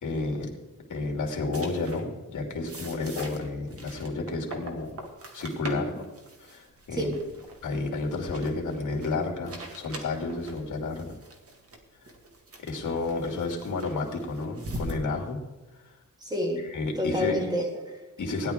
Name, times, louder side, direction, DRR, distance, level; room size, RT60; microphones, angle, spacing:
voice 1, 0.0-0.5 0.9-5.0 5.3-5.9 6.4-7.1 7.6-11.1 12.6-15.4 16.7-17.4 18.2-18.5, left 3 dB, 65° left, 1 dB, 2.6 m, -31 dB
sound 1, 1.5-2.0 2.7-15.0, right 1 dB, 45° right, 1.9 m, -42 dB
voice 2, 5.7-6.0 6.9-7.2 16.2-16.7 17.0-18.0, left 1 dB, 10° right, 1 dB, 2.0 m, -30 dB
17.0 x 10.5 x 3.6 m, 1.2 s
wide cardioid pair, 155°, 32 cm